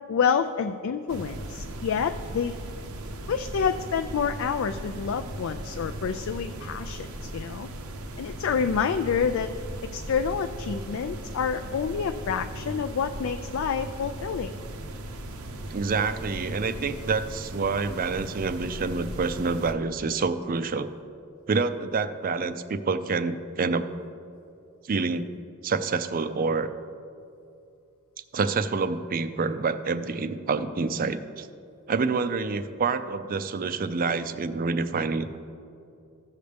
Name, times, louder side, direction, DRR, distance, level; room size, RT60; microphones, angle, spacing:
voice 1, 0.1-2.5 3.3-7.7 8.2-9.5 9.9-14.5, left 6 dB, 65° left, 7 dB, 0.3 m, -28 dB
sound 1, 1.1-19.7, right 1 dB, 85° right, 0.8 m, -38 dB
voice 2, 15.7-20.9 21.5-23.9 24.9-25.3 25.6-26.7 28.3-31.5 31.9-35.4, right 4 dB, 40° right, 11 dB, 0.4 m, -27 dB
15.5 x 6.5 x 3.4 m, 2.5 s
head